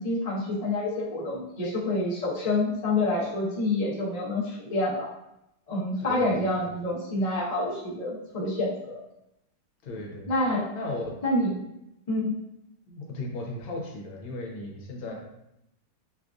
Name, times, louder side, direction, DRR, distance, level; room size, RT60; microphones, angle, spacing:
voice 1, 0.0-5.1 5.7-9.0 10.3-10.7 11.2-11.5 12.1-12.3, left 2 dB, 85° left, -6 dB, 0.3 m, -27 dB
voice 2, 6.0-6.5 9.8-10.3 10.7-11.2 12.9-15.1, left 2 dB, 70° left, 0 dB, 1.5 m, -36 dB
6.3 x 2.5 x 2.3 m, 0.85 s
omnidirectional pair, 2.4 m